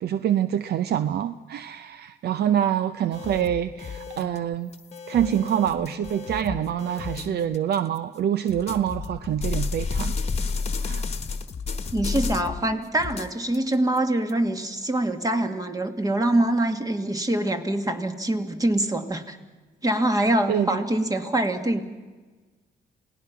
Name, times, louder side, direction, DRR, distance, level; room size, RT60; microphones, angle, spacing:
voice 1, 0.0-4.7 5.1-10.2 10.8-11.1 20.5-20.8, right 10 dB, 70° right, 12 dB, 0.7 m, -26 dB
sound 1, 3.1-8.0 8.5-12.6 13.0-14.3, left 4 dB, 40° left, 1.3 m, -32 dB
voice 2, 11.9-19.4 19.8-21.8, right 1 dB, 20° right, 7 dB, 1.9 m, -24 dB
28.0 x 18.5 x 5.9 m, 1.3 s
cardioid pair, 105°, 17 cm